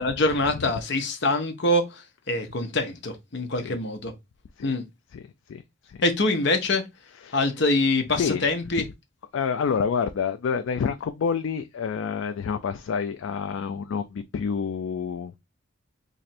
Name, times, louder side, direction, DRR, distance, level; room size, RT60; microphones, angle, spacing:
voice 1, 0.0-4.1 4.6-4.8 6.0-6.8 7.3-8.8, left 2 dB, 55° left, 0.8 m, -24 dB
voice 2, 9.3-15.3, left 6 dB, 70° left, 0.3 m, -28 dB
3.1 x 2.5 x 4.2 m
head